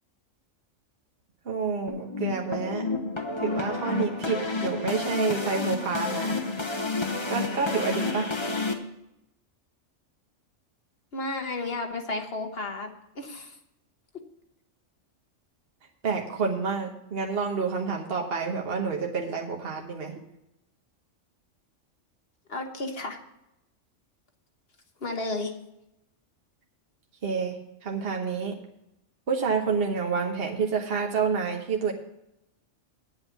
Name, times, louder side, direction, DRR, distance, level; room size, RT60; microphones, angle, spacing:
voice 1, 1.4-2.9 3.4-6.4 7.3-8.3 16.0-20.1 27.2-28.6 29.3-31.9, right 5 dB, 55° right, 2 dB, 1.3 m, -28 dB
sound 1, 1.9-8.7, left 3 dB, 25° left, 1.1 m, -30 dB
voice 2, 11.1-12.9 13.1-13.6 22.5-23.2 25.0-25.5, left 2 dB, 55° left, 5 dB, 1.3 m, -32 dB
9.6 x 8.1 x 5.8 m, 0.85 s
omnidirectional pair, 1.3 m